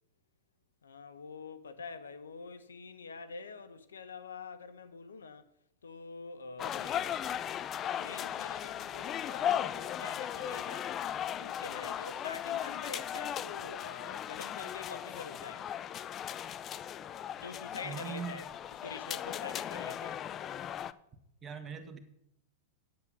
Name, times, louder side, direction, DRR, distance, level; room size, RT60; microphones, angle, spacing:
voice 1, 0.8-5.5 5.8-7.1 7.9-10.9 11.4-15.7 17.3-20.2, left 5 dB, 85° left, 0.9 m, -46 dB
sound 1, 6.6-20.9, left 10 dB, 30° left, 0.5 m, -37 dB
voice 2, 17.8-18.4 21.4-22.0, right 6 dB, 25° right, 1.6 m, -40 dB
9.7 x 8.1 x 5.4 m
hypercardioid pair, 105°, 0 cm